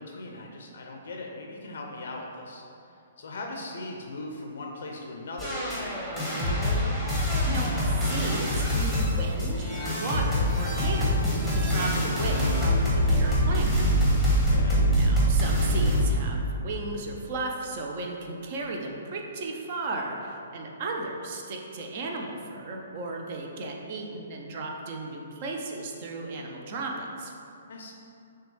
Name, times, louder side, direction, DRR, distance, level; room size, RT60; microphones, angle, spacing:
voice 1, 0.0-2.6 3.2-6.2 14.5-14.9 27.7-27.9, left 2 dB, 60° left, 1 dB, 0.4 m, -39 dB
sound 1, 5.4-16.0, equal, 5° right, 1.0 m, -24 dB
voice 2, 7.4-13.7 14.9-27.3, right 2 dB, 45° right, 1 dB, 0.5 m, -35 dB
5.8 x 2.3 x 3.1 m, 2.6 s
figure-of-eight pair, 125°, 0 cm